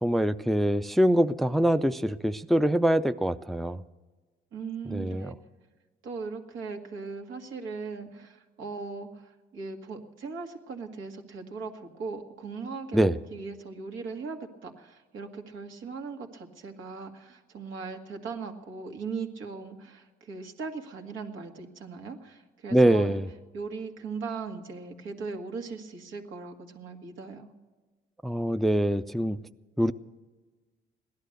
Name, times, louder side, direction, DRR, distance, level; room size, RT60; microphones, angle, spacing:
voice 1, 0.0-3.8 4.9-5.3 12.9-13.1 22.7-23.3 28.2-29.4 29.8-29.9, equal, ahead, 12 dB, 0.4 m, -24 dB
voice 2, 4.5-5.4 6.0-23.2 23.5-27.5, right 4 dB, 85° right, 3 dB, 2.0 m, -39 dB
17.0 x 11.5 x 6.5 m, 1.3 s
cardioid pair, 90°, 20 cm